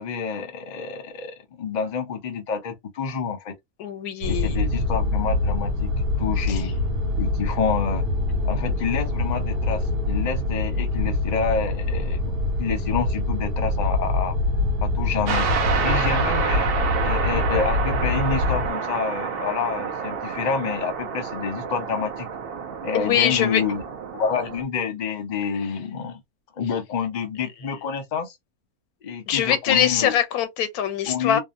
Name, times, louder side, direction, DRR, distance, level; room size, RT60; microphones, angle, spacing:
voice 1, 0.0-3.5 4.3-5.9 6.2-6.7 7.1-8.0 8.4-14.4 14.8-15.5 15.8-16.7 17.0-22.3 22.8-23.8 24.1-26.2 26.6-28.3 29.0-30.1 31.1-31.4, left 6 dB, 45° left, 0.6 m, -28 dB
voice 2, 3.8-4.6 6.5-6.6 22.9-23.6 29.3-31.4, left 9 dB, 90° left, 1.1 m, -23 dB
sound 1, 4.2-18.7, left 2 dB, 80° right, 1.1 m, -25 dB
sound 2, 15.3-24.6, right 6 dB, 60° right, 0.6 m, -28 dB
2.7 x 2.0 x 2.5 m
omnidirectional pair, 1.5 m